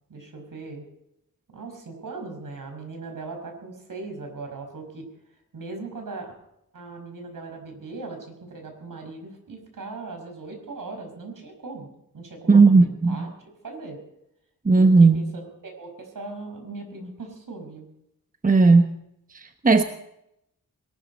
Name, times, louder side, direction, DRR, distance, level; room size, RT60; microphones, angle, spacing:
voice 1, 0.1-0.9 1.5-5.0 5.5-6.3 6.7-11.9 12.1-13.3 13.6-14.0 14.8-17.9, right 3 dB, 65° right, 4 dB, 5.7 m, -39 dB
voice 2, 12.5-13.3 14.6-15.2 18.4-19.0 19.3-19.8, right 3 dB, 25° right, 7 dB, 1.0 m, -16 dB
22.0 x 13.0 x 4.3 m, 0.80 s
cardioid pair, 70°, 36 cm